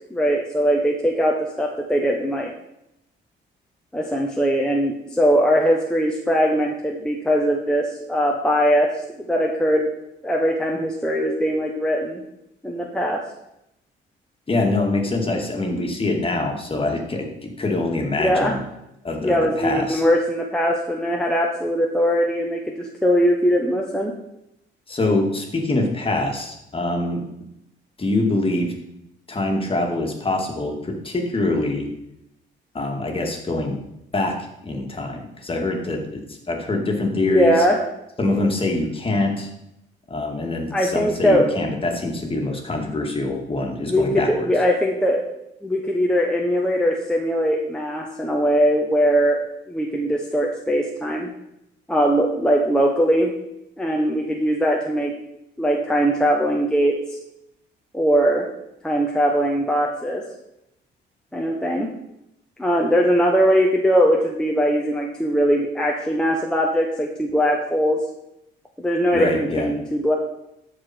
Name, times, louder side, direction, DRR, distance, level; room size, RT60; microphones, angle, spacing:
voice 1, 0.1-2.5 3.9-8.9 9.3-9.9 10.2-12.2 12.6-13.2 18.2-18.5 19.2-24.1 37.2-37.8 40.7-41.5 43.8-45.2 45.6-49.4 49.7-51.3 51.9-53.3 53.8-55.1 55.6-57.0 57.9-58.5 58.8-60.2 61.3-61.9 62.6-68.0 68.8-70.1, equal, 5° left, -1 dB, 1.1 m, -20 dB
voice 2, 14.5-18.6 19.0-20.0 24.9-27.3 28.0-28.7 29.3-31.9 32.7-33.8 34.1-34.3 34.6-37.6 38.2-39.5 40.1-44.5 69.1-69.7, left 2 dB, 25° left, 2 dB, 2.1 m, -24 dB
13.5 x 4.9 x 4.4 m, 0.83 s
cardioid pair, 90°, 20 cm